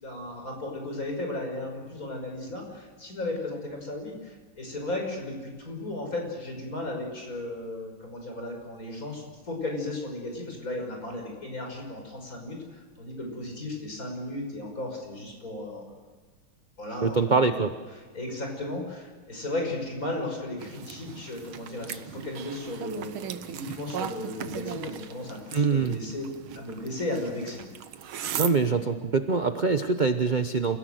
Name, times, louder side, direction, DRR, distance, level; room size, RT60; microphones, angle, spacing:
voice 1, 0.0-16.0 16.8-17.2 17.4-17.6 18.1-26.2 26.5-27.6, left 2 dB, 40° left, 2 dB, 6.3 m, -35 dB
voice 2, 17.0-17.7 25.5-26.0 28.4-30.8, right 4 dB, 45° right, 8 dB, 0.6 m, -24 dB
sound 1, 20.6-28.5, right 9 dB, 90° right, 1.9 m, -38 dB
28.5 x 17.0 x 7.9 m, 1.4 s
omnidirectional pair, 2.2 m